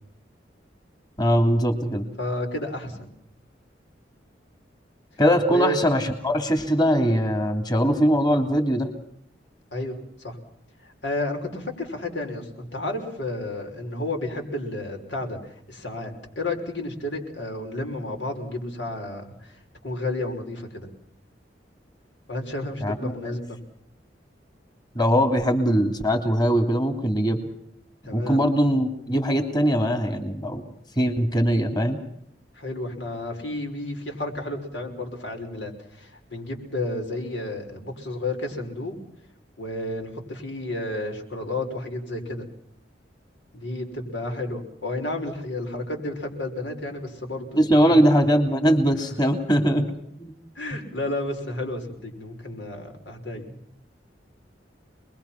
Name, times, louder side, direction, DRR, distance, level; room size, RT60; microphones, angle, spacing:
voice 1, 1.2-2.0 5.2-8.9 22.8-23.1 24.9-27.4 28.1-30.6 31.0-32.0 47.5-49.9 50.2-50.3, equal, 25° left, 4 dB, 2.9 m, -21 dB
voice 2, 2.2-3.1 5.5-5.8 9.7-10.4 10.8-20.9 22.3-23.6 28.0-28.4 32.5-39.0 39.6-42.4 43.5-48.1 50.6-53.6, left 1 dB, 90° left, 3 dB, 5.8 m, -32 dB
28.0 x 21.5 x 5.9 m, 0.70 s
head